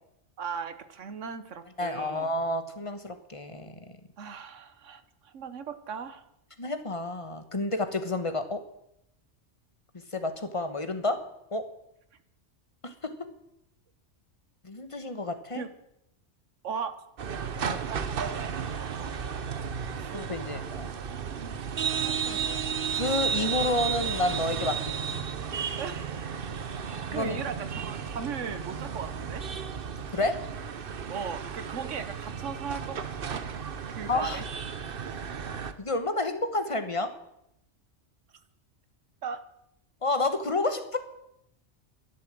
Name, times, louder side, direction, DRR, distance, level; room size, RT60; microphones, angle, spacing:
voice 1, 0.4-2.3 4.2-6.2 15.5-15.7 16.6-17.0 20.0-20.1 21.9-22.7 25.8-26.1 26.8-29.4 31.1-33.4 33.9-34.4 35.1-35.2 39.2-39.4, right 6 dB, 80° right, 12 dB, 1.4 m, -37 dB
voice 2, 1.8-3.8 6.6-8.6 10.1-11.2 11.5-11.6 12.8-13.1 14.6-15.6 17.7-17.8 20.1-20.9 22.9-25.2 27.1-27.4 30.1-30.4 34.1-34.4 35.8-37.1 40.0-41.0, left 2 dB, 25° left, 9 dB, 1.2 m, -30 dB
sound 1, 17.2-35.7, right 7 dB, 50° right, 1.0 m, -33 dB
12.0 x 11.0 x 7.6 m, 0.80 s
omnidirectional pair, 1.2 m